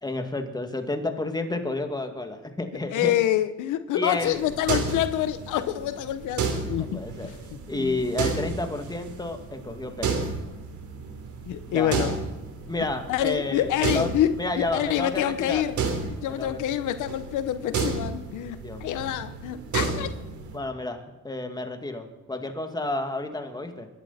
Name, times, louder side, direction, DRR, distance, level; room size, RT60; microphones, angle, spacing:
voice 1, 0.0-3.2 3.9-4.4 6.8-7.3 7.7-10.3 11.7-12.2 12.7-14.1 14.4-15.7 16.3-16.6 18.6-19.1 20.5-23.9, left 2 dB, 15° left, 5 dB, 2.3 m, -31 dB
voice 2, 2.9-7.0 7.7-8.0 11.5-12.1 13.1-15.8 16.2-20.1, left 12 dB, 85° left, 12 dB, 0.9 m, -27 dB
sound 1, 4.2-20.6, right 4 dB, 75° right, 3.5 m, -32 dB
25.0 x 11.5 x 4.2 m, 1.1 s
cardioid pair, 90°, 30 cm